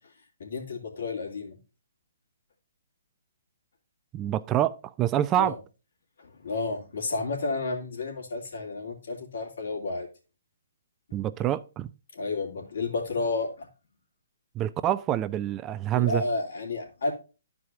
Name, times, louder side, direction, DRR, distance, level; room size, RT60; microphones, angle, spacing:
voice 1, 0.4-1.6 5.4-5.6 6.2-10.1 12.2-13.7 15.9-17.1, left 3 dB, 70° left, 2.7 m, -31 dB
voice 2, 4.1-5.5 11.1-11.9 14.6-16.2, right 12 dB, 20° right, 0.3 m, -26 dB
11.0 x 4.8 x 3.7 m
hypercardioid pair, 150°, 0 cm